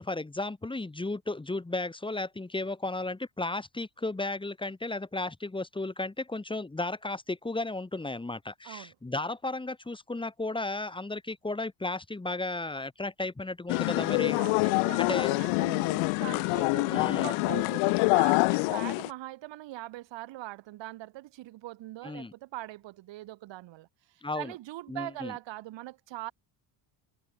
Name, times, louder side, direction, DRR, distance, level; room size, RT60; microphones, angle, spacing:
voice 1, 0.0-14.4 15.0-15.3 16.9-17.4 22.0-22.3 24.2-24.5 24.9-25.3, left 2 dB, 10° left, 4.1 m, -34 dB
sound 1, 13.7-19.1, left 31 dB, 90° left, 0.8 m, -26 dB
voice 2, 14.4-23.9 24.4-26.3, right 16 dB, 60° right, 5.7 m, -42 dB
cardioid pair, 145°, 49 cm